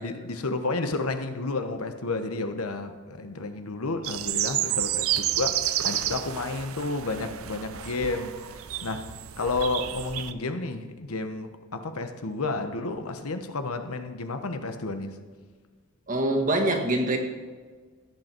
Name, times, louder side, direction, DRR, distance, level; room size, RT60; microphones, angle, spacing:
voice 1, 0.0-8.4 8.8-9.1 9.4-15.1, left 3 dB, 85° left, 8 dB, 1.1 m, -31 dB
sound 1, 4.0-10.3, right 12 dB, 75° right, 0.6 m, -30 dB
voice 2, 16.1-17.2, right 1 dB, 35° right, 2 dB, 1.7 m, -24 dB
17.5 x 8.1 x 4.5 m, 1.5 s
head